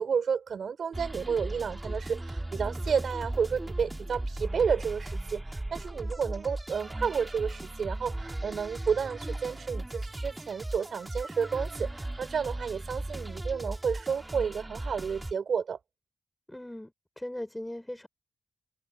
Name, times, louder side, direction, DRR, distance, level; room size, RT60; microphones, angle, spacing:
voice 1, 0.0-15.8, right 6 dB, 70° right, 4.0 m, -31 dB
sound 1, 0.9-15.3, right 1 dB, 20° right, 2.5 m, -37 dB
voice 2, 16.5-18.1, left 1 dB, 10° left, 5.7 m, -39 dB
cardioid pair, 55°, 0 cm